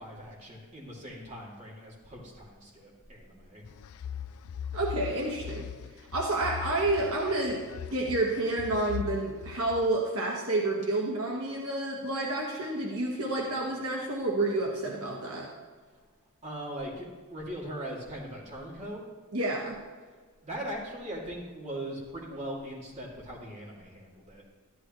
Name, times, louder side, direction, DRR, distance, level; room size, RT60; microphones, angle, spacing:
voice 1, 0.0-3.6 16.4-19.0 20.4-24.4, right 1 dB, 30° right, -4 dB, 2.6 m, -40 dB
sound 1, 3.6-9.9, left 8 dB, 75° left, 0.4 m, -40 dB
voice 2, 4.7-5.7 6.0-7.6 7.9-15.5 19.3-19.8, right 2 dB, 70° right, -2 dB, 1.5 m, -29 dB
13.0 x 11.5 x 3.2 m, 1.5 s
head